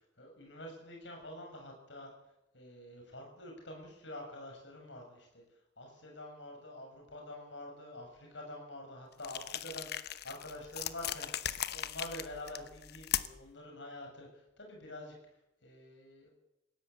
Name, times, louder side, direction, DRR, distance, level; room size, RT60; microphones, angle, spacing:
voice 1, 0.0-2.1 2.5-15.2 15.6-16.3, left 1 dB, 75° left, 2 dB, 7.2 m, -47 dB
sound 1, 9.2-13.5, left 11 dB, 60° left, 0.9 m, -38 dB
20.0 x 17.0 x 8.5 m, 0.91 s
head